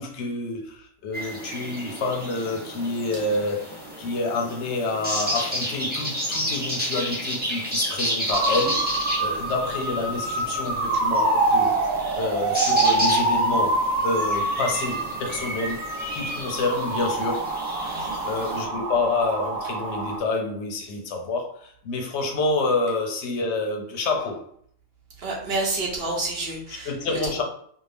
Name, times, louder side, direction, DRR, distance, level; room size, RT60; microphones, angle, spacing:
voice 1, 0.0-8.9 9.2-11.7 12.1-15.8 16.1-17.5 17.8-24.5 26.8-27.4, left 3 dB, 65° left, 0.8 m, -28 dB
sound 1, 1.1-18.6, equal, 15° right, 0.3 m, -32 dB
sound 2, 8.3-20.2, right 2 dB, 90° right, 1.0 m, -26 dB
voice 2, 17.8-18.2 25.2-26.9, right 2 dB, 55° right, 0.9 m, -29 dB
2.7 x 2.3 x 3.2 m
omnidirectional pair, 1.4 m